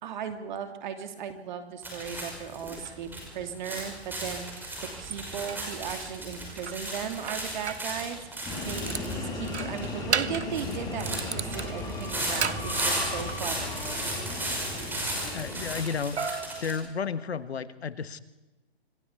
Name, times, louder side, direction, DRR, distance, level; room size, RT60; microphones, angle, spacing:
voice 1, 0.0-4.7 5.0-8.2 8.6-13.7, right 8 dB, 45° right, 7 dB, 3.0 m, -37 dB
sound 1, 1.8-16.7, right 1 dB, 5° right, 5.7 m, -36 dB
sound 2, 2.7-3.0 4.6-4.7 5.1-5.7 6.7-7.9 8.5-9.1 9.5-10.6 11.0-13.4 16.2-17.4, right 6 dB, 80° right, 1.3 m, -34 dB
sound 3, 8.4-15.9, left 2 dB, 10° left, 5.7 m, -36 dB
voice 2, 15.2-16.2 16.6-18.2, left 6 dB, 70° left, 14 dB, 1.4 m, -32 dB
26.5 x 16.5 x 8.3 m, 1.1 s
hypercardioid pair, 140°, 33 cm